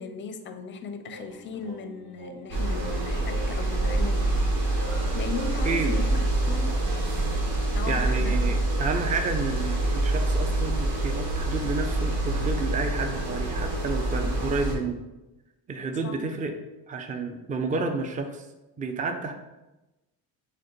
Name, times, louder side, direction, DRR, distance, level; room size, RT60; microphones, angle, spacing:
voice 1, 0.0-6.8 7.6-8.4 16.0-16.2, left 5 dB, 30° left, 9 dB, 0.5 m, -37 dB
sound 1, 1.1-6.8, right 1 dB, 45° right, 1.4 m, -43 dB
sound 2, 2.5-14.8, right 2 dB, 75° right, 1.3 m, -26 dB
voice 2, 7.9-15.0 15.7-16.5 16.9-18.5 18.8-19.3, right 3 dB, 20° right, 5 dB, 0.5 m, -30 dB
6.2 x 2.2 x 3.0 m, 1.0 s
supercardioid pair, 80°, 39 cm